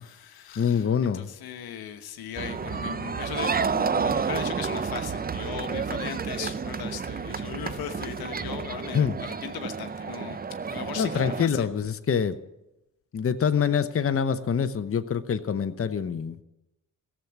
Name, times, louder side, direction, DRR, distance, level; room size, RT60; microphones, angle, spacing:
voice 1, 0.0-10.4 10.7-11.7, left 9 dB, 85° left, 8 dB, 1.1 m, -38 dB
voice 2, 0.6-1.3 8.9-9.1 11.0-12.3 13.1-16.4, left 7 dB, 40° left, 10 dB, 0.9 m, -25 dB
sound 1, 2.4-11.4, right 5 dB, 25° right, 0.6 m, -30 dB
14.0 x 7.4 x 9.3 m, 0.94 s
supercardioid pair, 60°, 36 cm